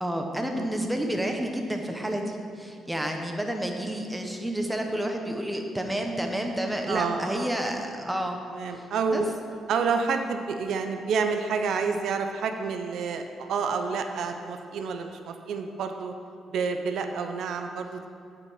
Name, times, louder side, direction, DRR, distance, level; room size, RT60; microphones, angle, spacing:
voice 1, 0.0-8.4 8.7-8.9 9.1-9.2, right 1 dB, 5° right, 3 dB, 1.0 m, -30 dB
voice 2, 6.9-7.5 8.5-9.3 9.7-16.1 16.5-18.1, right 5 dB, 75° right, 6 dB, 0.6 m, -29 dB
8.8 x 5.4 x 5.7 m, 2.4 s
cardioid pair, 90°, 0 cm